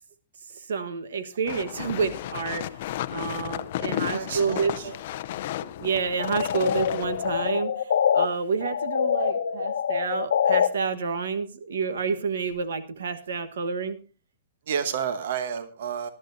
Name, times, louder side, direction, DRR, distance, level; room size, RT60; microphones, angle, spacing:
voice 1, 0.5-4.8 5.6-14.0, right 5 dB, 90° right, 11 dB, 1.3 m, -29 dB
sound 1, 1.5-7.5, left 13 dB, 40° left, 0.5 m, -33 dB
voice 2, 3.8-5.0 6.4-6.5 14.7-16.1, right 7 dB, 55° right, 11 dB, 1.1 m, -31 dB
sound 2, 6.2-8.3 8.6-10.7, left 8 dB, 80° left, 0.9 m, -25 dB
19.0 x 11.5 x 2.6 m, 0.34 s
hypercardioid pair, 175°, 0 cm